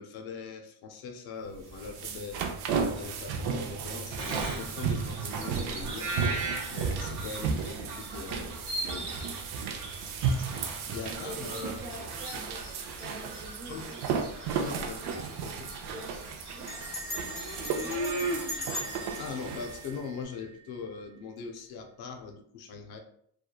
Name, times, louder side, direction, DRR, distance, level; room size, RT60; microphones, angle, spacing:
voice 1, 0.0-2.4 2.9-6.1 6.7-8.5 8.8-9.1 10.9-11.8 13.7-14.0 14.5-15.7 19.2-23.0, left 5 dB, 65° left, 4 dB, 0.5 m, -41 dB
sound 1, 1.5-20.0, right 5 dB, 70° right, 0.5 m, -34 dB
Bird vocalization bird call bird song, 4.2-19.7, right 2 dB, 85° right, 1.0 m, -39 dB
voice 2, 10.1-10.5 11.2-12.7 13.0-14.0 15.0-15.2 15.9-17.3 17.7-18.6, equal, 20° right, -1 dB, 0.6 m, -45 dB
Bell, 15.7-15.9 16.7-20.8, equal, 15° left, 0.7 m, -40 dB
2.8 x 2.3 x 2.3 m, 0.67 s
cardioid pair, 155°, 40 cm